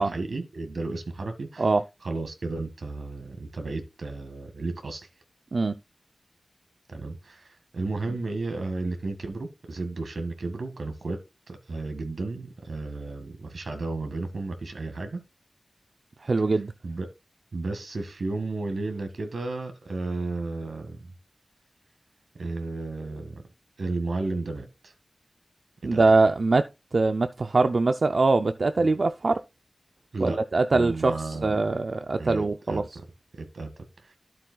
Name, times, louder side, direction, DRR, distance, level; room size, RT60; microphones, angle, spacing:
voice 1, 0.0-1.6 2.0-5.0 6.9-11.2 11.5-15.2 16.8-17.1 17.5-21.1 22.4-23.4 23.8-24.9 25.9-26.0 28.8-28.9 30.1-30.4 30.7-31.6 32.2-32.8 33.4-33.7, right 3 dB, 85° right, 1.7 m, -33 dB
voice 2, 16.2-16.7 25.8-29.4 30.2-32.8, right 3 dB, 65° right, 0.4 m, -23 dB
12.5 x 7.5 x 2.3 m
wide cardioid pair, 75°, 0 cm